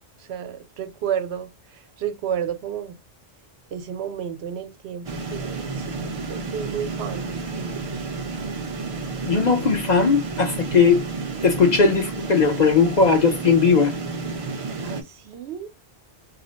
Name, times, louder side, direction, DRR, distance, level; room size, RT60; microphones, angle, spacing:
voice 1, 0.2-3.0 3.7-7.8 14.8-15.7, right 8 dB, 75° right, 0.8 m, -32 dB
sound 1, 5.0-15.0, right 3 dB, 45° right, 0.5 m, -31 dB
voice 2, 9.3-11.0 11.4-13.9, left 5 dB, 50° left, 0.6 m, -18 dB
2.4 x 2.1 x 3.8 m
omnidirectional pair, 1.1 m